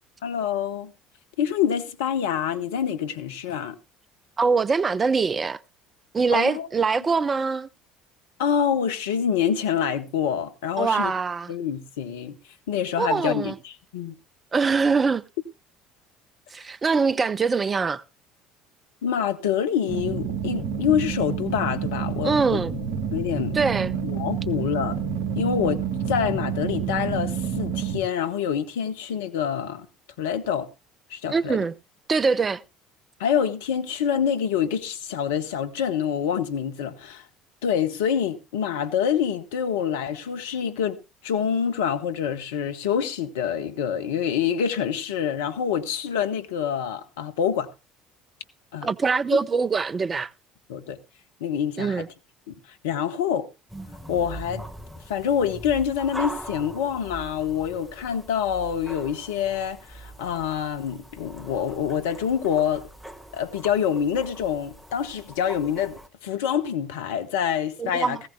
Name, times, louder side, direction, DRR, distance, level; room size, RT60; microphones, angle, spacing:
voice 1, 0.2-0.9 1.4-3.8 6.3-6.7 8.4-11.1 11.5-12.4 12.7-14.1 19.0-22.6 23.1-23.6 24.0-25.0 25.3-29.9 30.2-30.7 31.1-31.6 33.2-37.3 37.6-41.0 41.2-47.7 48.7-48.9 49.3-49.4 50.7-51.0 51.4-52.0 52.5-53.5 54.1-54.6 55.1-62.9 63.3-68.2, left 8 dB, 65° left, 0.9 m, -26 dB
voice 2, 4.4-5.6 6.1-7.7 10.8-11.5 13.0-13.6 14.5-15.2 16.5-18.0 22.2-22.7 23.5-23.9 31.3-31.7 32.1-32.6 48.8-50.3 51.8-52.1 67.8-68.2, right 4 dB, 25° right, 0.5 m, -23 dB
sound 1, 19.9-28.0, right 7 dB, 65° right, 1.9 m, -28 dB
sound 2, 53.7-66.1, right 1 dB, 5° right, 1.4 m, -41 dB
18.0 x 15.5 x 2.2 m
figure-of-eight pair, 60°, 0 cm